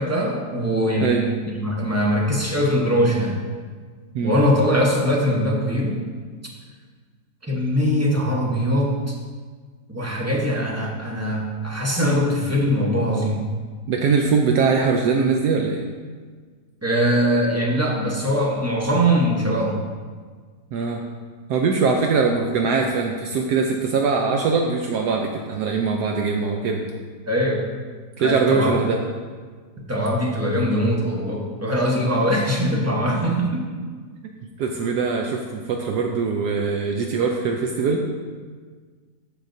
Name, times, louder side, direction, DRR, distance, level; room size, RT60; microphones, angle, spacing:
voice 1, 0.0-1.2 1.4-3.4 4.2-6.0 7.4-9.2 9.9-13.5 16.8-19.8 27.3-27.6 28.2-28.8 29.9-33.7, equal, 15° right, -2 dB, 0.7 m, -21 dB
voice 2, 13.9-15.8 20.7-21.0 21.5-26.8 28.2-29.0 34.6-38.1, right 4 dB, 75° right, 2 dB, 1.2 m, -22 dB
13.5 x 5.1 x 2.6 m, 1.5 s
omnidirectional pair, 1.8 m